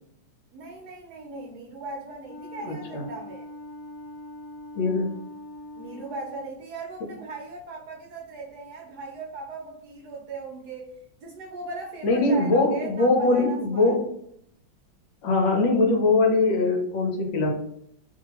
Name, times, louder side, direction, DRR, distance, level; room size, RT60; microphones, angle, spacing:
voice 1, 0.5-3.5 5.7-13.9, right 3 dB, 70° right, -1 dB, 0.9 m, -38 dB
Wind instrument woodwind instrument, 2.3-6.5, left 1 dB, 60° left, 1.5 m, -42 dB
voice 2, 2.6-3.0 4.7-5.1 12.0-14.0 15.2-17.5, left 3 dB, 75° left, 2 dB, 1.4 m, -22 dB
3.0 x 2.7 x 2.8 m, 0.71 s
omnidirectional pair, 2.1 m